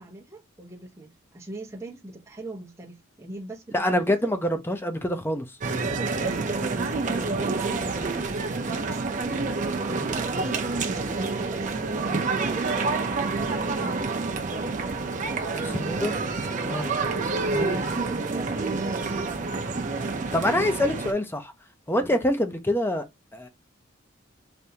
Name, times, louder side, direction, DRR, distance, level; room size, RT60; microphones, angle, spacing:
voice 1, 0.0-4.1 6.2-9.5 9.8-11.8 12.4-13.3 13.6-14.2 16.6-16.9 17.4-19.4 20.4-20.9 22.0-22.1, right 2 dB, 15° right, 0.8 m, -41 dB
voice 2, 3.7-5.5 9.9-10.0 15.6-16.1 16.6-16.9 17.5-17.8 20.3-21.5 21.9-23.1 23.3-23.5, left 1 dB, 10° left, 0.5 m, -25 dB
sound 1, 5.6-21.1, right 3 dB, 40° right, 0.6 m, -28 dB
3.4 x 2.7 x 2.8 m
head